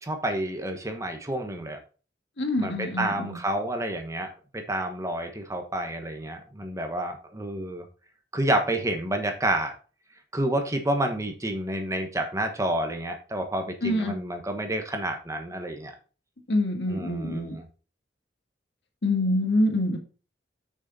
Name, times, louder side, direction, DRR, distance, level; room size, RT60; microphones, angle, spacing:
voice 1, 0.0-1.8 2.6-7.8 8.3-9.7 10.3-15.9 16.9-17.6, right 1 dB, 20° right, 5 dB, 1.2 m, -29 dB
voice 2, 2.4-3.4 13.8-14.2 16.5-17.6 19.0-20.0, left 1 dB, 75° left, 3 dB, 1.7 m, -26 dB
6.4 x 6.4 x 4.1 m, 0.36 s
head